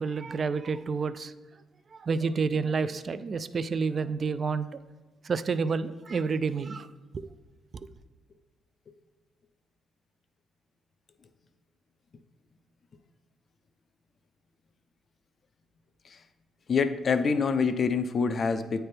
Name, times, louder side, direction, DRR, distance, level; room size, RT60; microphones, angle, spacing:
voice 1, 0.0-1.3 1.9-4.7 5.2-6.9 7.1-7.3 7.8-7.9, right 5 dB, 40° right, 14 dB, 0.3 m, -29 dB
voice 2, 16.7-18.8, left 5 dB, 45° left, 10 dB, 0.5 m, -26 dB
8.6 x 3.3 x 4.4 m, 1.1 s
cardioid pair, 90°, 0 cm